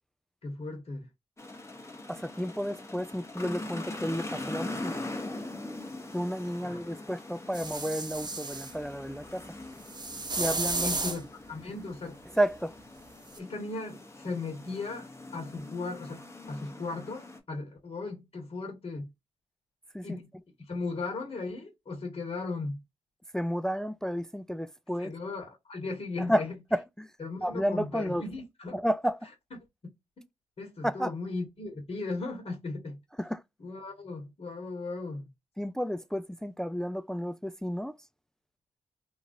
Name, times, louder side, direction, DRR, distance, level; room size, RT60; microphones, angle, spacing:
voice 1, 0.4-1.0 6.6-6.8 10.8-11.2 11.5-12.2 13.4-19.1 20.0-20.3 20.7-22.8 25.0-26.5 27.2-28.8 30.6-33.0 33.6-35.3, left 3 dB, 55° left, 1.4 m, -37 dB
sound 1, 1.4-17.4, left 2 dB, 20° left, 1.1 m, -42 dB
voice 2, 2.1-4.9 6.1-9.5 10.4-11.1 12.4-12.7 19.9-20.2 23.3-25.1 26.3-27.1 27.4-28.2 28.7-29.3 30.8-31.1 33.2-33.4 35.6-38.0, equal, 5° left, 0.3 m, -31 dB
sound 2, 7.5-8.7 9.9-11.2 13.3-13.4, right 3 dB, 35° right, 0.9 m, -33 dB
3.0 x 2.4 x 2.6 m
supercardioid pair, 40°, 12 cm